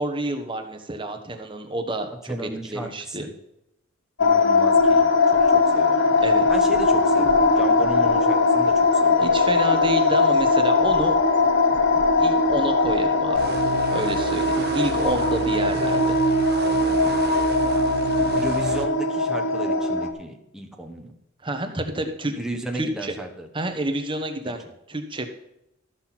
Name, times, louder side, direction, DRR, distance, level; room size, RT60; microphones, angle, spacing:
voice 1, 0.0-2.3 2.7-3.3 6.2-6.4 9.2-11.2 12.2-13.4 13.9-16.2 21.4-22.3 22.7-23.1 23.5-25.3, right 2 dB, 25° right, 5 dB, 1.1 m, -29 dB
voice 2, 2.3-3.3 4.2-5.1 5.4-6.2 6.5-9.2 18.4-21.1 22.2-23.8 24.5-24.6, right 1 dB, 5° right, 1 dB, 1.2 m, -35 dB
sound 1, 4.2-20.1, left 3 dB, 60° left, 0.9 m, -20 dB
sound 2, 13.3-18.9, right 5 dB, 50° right, 0.6 m, -32 dB
13.5 x 6.1 x 5.9 m, 0.83 s
head